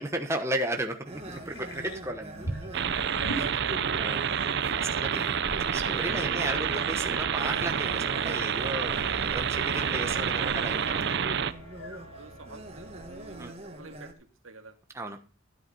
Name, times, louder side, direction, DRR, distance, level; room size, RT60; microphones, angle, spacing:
voice 1, 0.0-2.4 3.9-5.3 5.7-11.4 13.4-13.5 14.9-15.2, right 1 dB, 15° right, 4 dB, 1.1 m, -34 dB
sound 1, 1.0-14.1, right 1 dB, 30° right, 2.0 m, -43 dB
sound 2, 1.1-13.5, right 1 dB, 65° left, 3.7 m, -44 dB
sound 3, 2.7-11.5, right 7 dB, 55° right, 0.6 m, -28 dB
voice 2, 3.0-4.0 6.2-6.5 12.1-14.1 14.4-14.8, right 3 dB, 70° right, 6 dB, 2.1 m, -47 dB
13.0 x 8.2 x 5.5 m, 0.35 s
head